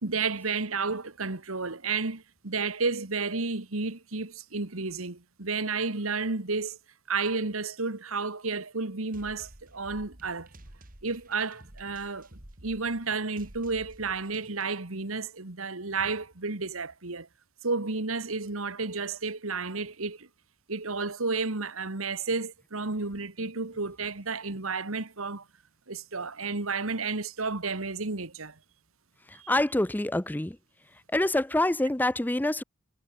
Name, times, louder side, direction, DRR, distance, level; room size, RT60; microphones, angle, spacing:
voice 1, 0.0-6.8 7.1-10.5 11.0-12.3 12.6-17.3 17.6-20.3 20.7-25.4 25.9-28.6 29.4-29.5, right 4 dB, 70° right, 1.9 m, -32 dB
sound 1, 9.1-14.8, right 1 dB, 40° right, 2.6 m, -51 dB
voice 2, 29.5-30.6 31.1-32.6, left 1 dB, 10° left, 0.6 m, -26 dB
head